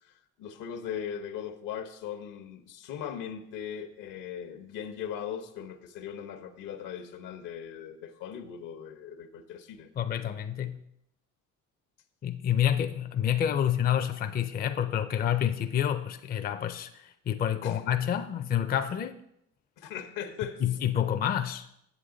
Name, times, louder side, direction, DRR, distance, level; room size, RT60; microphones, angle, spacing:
voice 1, 0.4-9.9 17.6-17.8 19.8-20.6, left 8 dB, 75° left, 9 dB, 0.9 m, -39 dB
voice 2, 10.0-10.8 12.2-16.9 17.3-19.2 20.6-21.6, left 10 dB, 30° left, 8 dB, 0.4 m, -28 dB
8.3 x 7.2 x 3.8 m, 0.76 s
cardioid pair, 120°, 32 cm